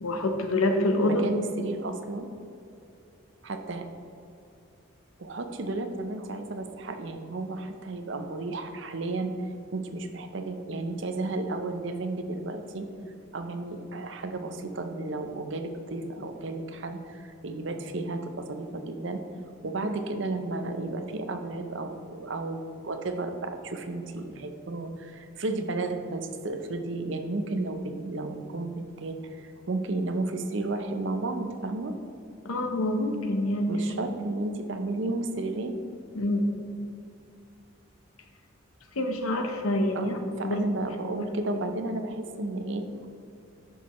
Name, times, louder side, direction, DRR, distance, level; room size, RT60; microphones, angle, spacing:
voice 1, 0.0-1.2 32.4-33.8 36.2-36.6 39.0-40.6 41.2-41.3, left 1 dB, 90° left, 4 dB, 0.9 m, -26 dB
voice 2, 1.1-2.3 3.4-3.9 5.2-9.3 9.7-12.9 13.3-19.2 19.6-32.0 33.7-35.8 39.9-42.9, right 2 dB, 60° right, 7 dB, 0.6 m, -33 dB
10.0 x 6.2 x 3.1 m, 2.7 s
head